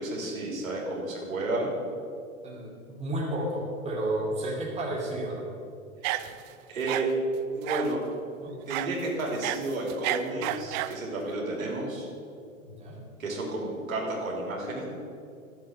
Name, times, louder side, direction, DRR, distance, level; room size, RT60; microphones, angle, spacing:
voice 1, 0.0-1.7 6.7-7.1 7.5-8.0 8.7-12.1 13.2-14.9, right 2 dB, 75° right, -2 dB, 3.2 m, -31 dB
voice 2, 2.4-5.5 8.4-8.6 10.3-10.5 12.6-13.0, right 1 dB, 15° right, -3 dB, 2.7 m, -32 dB
sound 1, 6.0-6.5 6.9-7.1 7.7-8.0 8.7-8.9 9.3-11.0, right 15 dB, 35° right, 0.5 m, -31 dB
13.0 x 7.6 x 6.4 m, 2.4 s
hypercardioid pair, 105°, 41 cm